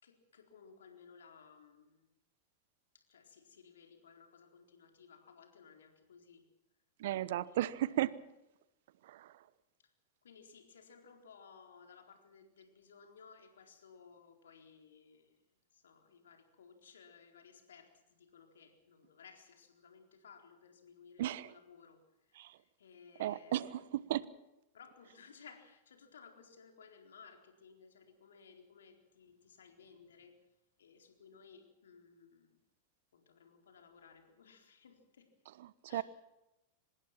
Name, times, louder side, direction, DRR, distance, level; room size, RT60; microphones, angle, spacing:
voice 1, 0.0-2.1 2.9-6.5 7.4-8.1 9.8-9.9 10.2-23.9 24.7-32.6 33.1-35.3 35.9-36.0, left 6 dB, 75° left, 5 dB, 4.2 m, -59 dB
voice 2, 7.0-8.2 9.1-9.3 21.2-21.5 22.4-22.5 23.2-24.3 35.6-36.0, right 13 dB, 65° right, 19 dB, 1.0 m, -35 dB
25.0 x 20.5 x 5.9 m, 0.93 s
hypercardioid pair, 95°, 0 cm